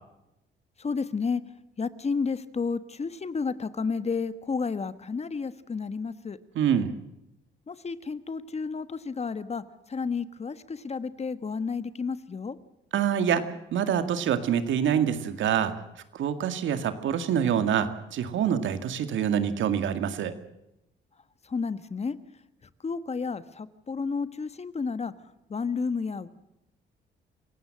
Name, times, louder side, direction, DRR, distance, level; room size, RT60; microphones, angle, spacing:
voice 1, 0.8-1.4 1.8-6.4 7.7-12.6 21.5-22.2 22.8-25.1 25.5-26.3, left 5 dB, 30° left, 13 dB, 1.3 m, -31 dB
voice 2, 6.6-6.9 12.9-13.4 13.7-15.7 16.1-20.3, right 8 dB, 75° right, 10 dB, 2.0 m, -26 dB
27.5 x 16.5 x 7.7 m, 0.88 s
cardioid pair, 90°, 20 cm